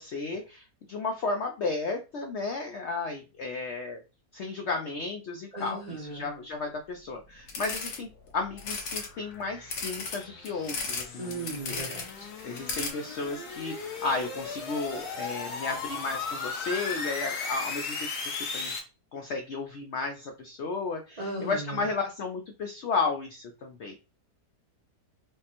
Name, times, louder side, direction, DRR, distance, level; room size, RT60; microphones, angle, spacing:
voice 1, 0.0-4.0 4.3-8.1 8.3-12.0 12.4-18.1 18.4-18.7 19.1-23.9, left 3 dB, 90° left, 4 dB, 0.6 m, -33 dB
voice 2, 5.5-6.3 11.2-12.3 21.2-21.9, right 2 dB, 40° right, -3 dB, 0.6 m, -37 dB
sound 1, 7.5-18.8, left 4 dB, 70° left, 1.4 m, -37 dB
sound 2, 7.5-8.0 8.6-9.1 9.7-11.0 11.3-12.1 12.4-12.9, left 4 dB, 55° left, 1.0 m, -34 dB
4.9 x 2.1 x 2.9 m, 0.30 s
omnidirectional pair, 1.8 m